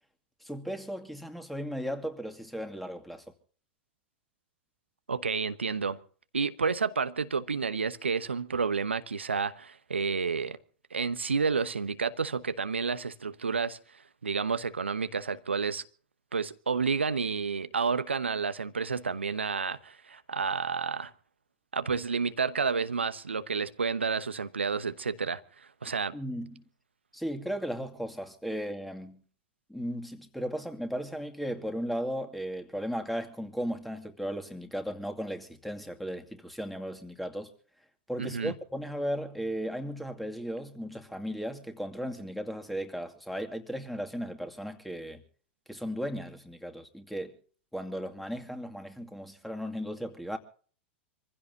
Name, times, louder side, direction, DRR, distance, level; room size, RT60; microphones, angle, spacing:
voice 1, 0.4-3.2 26.1-26.6 27.1-29.2 29.7-37.5 38.1-45.2 45.7-47.4 47.7-50.4, equal, ahead, 2.5 m, -36 dB
voice 2, 5.1-6.0 6.3-10.6 10.9-13.8 14.2-15.8 16.3-21.1 21.7-25.4 25.8-26.2 38.2-38.5, right 5 dB, 85° right, 1.0 m, -30 dB
26.5 x 15.5 x 2.8 m
figure-of-eight pair, 95°, 6 cm